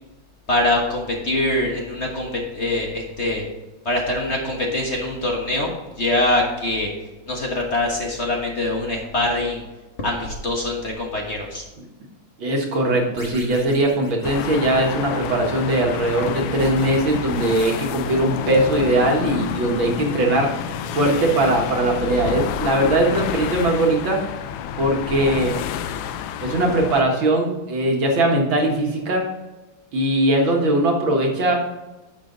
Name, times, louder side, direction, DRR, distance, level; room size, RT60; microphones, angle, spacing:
voice 1, 0.5-3.5 3.8-5.7 6.0-6.9 7.3-9.6 10.0-11.6, left 1 dB, 35° left, -1 dB, 1.5 m, -23 dB
voice 2, 12.4-20.5 20.9-24.2 24.8-25.5 26.4-29.2 29.9-31.6, right 1 dB, 75° right, 0 dB, 2.4 m, -20 dB
sound 1, 13.2-15.1 16.6-18.4, right 1 dB, 10° left, 2.7 m, -41 dB
sound 2, 14.2-27.0, left 9 dB, 85° left, 1.4 m, -29 dB
9.8 x 6.8 x 3.9 m, 1.1 s
omnidirectional pair, 2.2 m